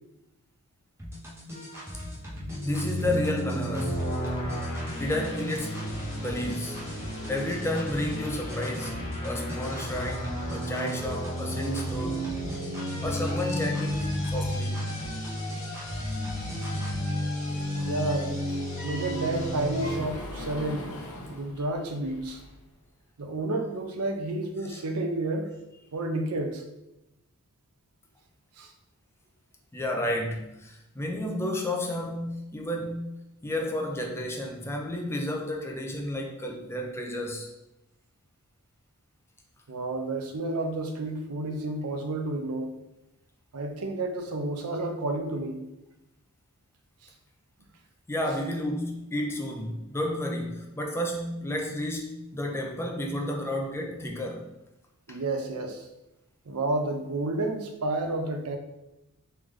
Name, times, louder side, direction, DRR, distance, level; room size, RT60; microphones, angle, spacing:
sound 1, 1.0-17.0, equal, 10° right, 0.8 m, -40 dB
sound 2, 2.1-20.0, equal, 35° left, 1.1 m, -32 dB
voice 1, 2.6-4.1 5.0-5.9 6.2-6.9 7.3-12.3 13.0-14.8 24.7-24.8 29.7-33.1 33.4-37.5 48.1-54.5 55.1-55.2, left 1 dB, 10° left, 1 dB, 0.5 m, -31 dB
Sliding door, 17.8-22.7, left 1 dB, 70° left, 0.7 m, -43 dB
voice 2, 17.8-18.3 18.8-20.9 21.3-22.4 23.2-25.5 25.9-26.6 28.6-28.7 39.7-42.7 43.5-45.6 55.1-55.8 56.5-58.6, right 2 dB, 75° right, 4 dB, 0.6 m, -30 dB
3.7 x 3.2 x 3.1 m, 0.90 s
head